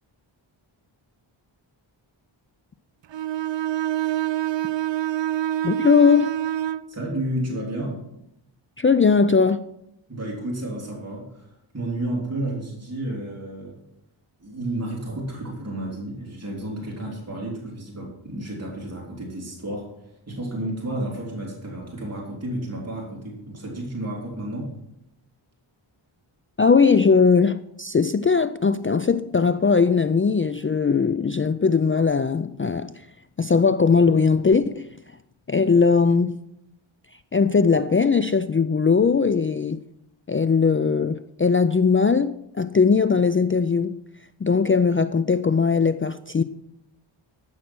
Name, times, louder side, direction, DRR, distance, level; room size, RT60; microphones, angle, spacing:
Bowed string instrument, 3.1-6.9, right 13 dB, 60° right, 0.5 m, -26 dB
voice 1, 5.6-6.4 8.8-9.6 26.6-32.9 33.4-34.9 35.5-36.4 37.3-39.8 40.3-44.0 44.4-46.4, left 5 dB, 30° left, 0.3 m, -19 dB
voice 2, 6.9-8.0 10.1-13.8 14.4-24.7, right 1 dB, 30° right, 3.3 m, -31 dB
13.5 x 6.4 x 6.1 m
wide cardioid pair, 85°, 49 cm